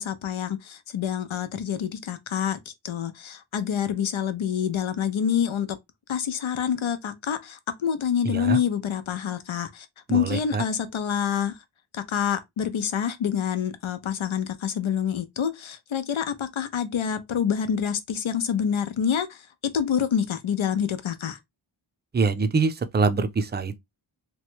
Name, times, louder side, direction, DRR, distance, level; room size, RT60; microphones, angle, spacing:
voice 1, 0.0-2.6 2.8-5.8 6.1-11.5 11.9-21.4, left 8 dB, 75° left, 0.6 m, -27 dB
voice 2, 8.3-8.6 10.1-10.6 22.1-23.8, right 4 dB, 25° right, 0.4 m, -24 dB
3.0 x 2.2 x 2.9 m
wide cardioid pair, 50°, 47 cm